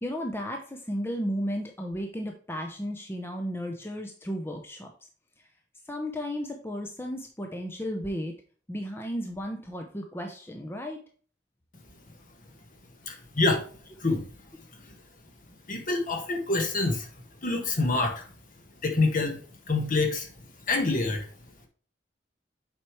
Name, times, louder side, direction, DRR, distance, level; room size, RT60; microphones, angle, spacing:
voice 1, 0.0-4.9 5.9-8.3 8.7-11.0, equal, 15° left, 3 dB, 0.6 m, -34 dB
voice 2, 13.1-13.6 14.0-14.2 15.7-17.1 17.4-18.2 18.8-19.4 19.7-20.3 20.7-21.2, left 3 dB, 45° left, 4 dB, 1.4 m, -26 dB
7.3 x 4.7 x 3.1 m, 0.42 s
head